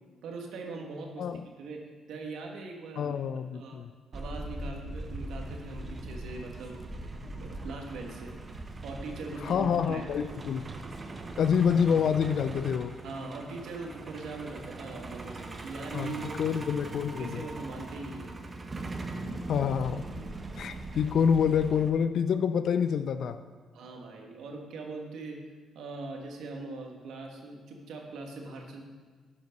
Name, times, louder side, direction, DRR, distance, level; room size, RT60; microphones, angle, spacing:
voice 1, 0.2-1.3 1.6-3.2 3.5-3.8 4.1-6.8 7.2-8.3 8.8-10.1 13.0-16.7 17.2-18.3 20.9-21.0 23.7-25.4 25.7-28.8, right 3 dB, 80° right, 2 dB, 1.5 m, -41 dB
voice 2, 3.0-3.9 9.4-10.6 11.4-13.0 15.9-17.4 19.5-20.0 20.6-23.4, left 7 dB, 65° left, 11 dB, 0.3 m, -27 dB
Truck, 4.1-21.9, right 2 dB, 30° right, 0.9 m, -41 dB
11.0 x 5.4 x 5.2 m, 1.5 s
cardioid pair, 90°, 0 cm